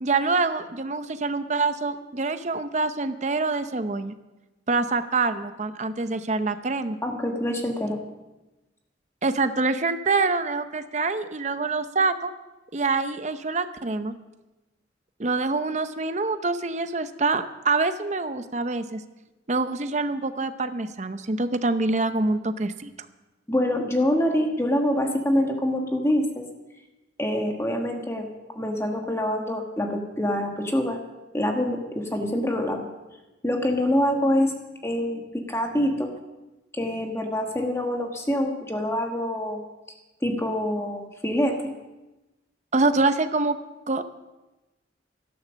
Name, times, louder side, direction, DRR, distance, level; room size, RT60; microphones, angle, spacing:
voice 1, 0.0-4.1 4.7-7.0 9.2-12.3 12.7-14.1 15.2-19.0 19.5-22.9 42.7-43.6 43.9-44.0, right 3 dB, 40° right, 10 dB, 0.7 m, -25 dB
voice 2, 7.0-8.0 23.5-26.4 27.2-28.3 28.5-31.0 31.3-32.9 33.4-34.5 34.8-36.1 36.7-39.6 40.2-41.6, left 1 dB, 15° left, 3 dB, 1.3 m, -25 dB
12.5 x 12.0 x 6.3 m, 1.1 s
head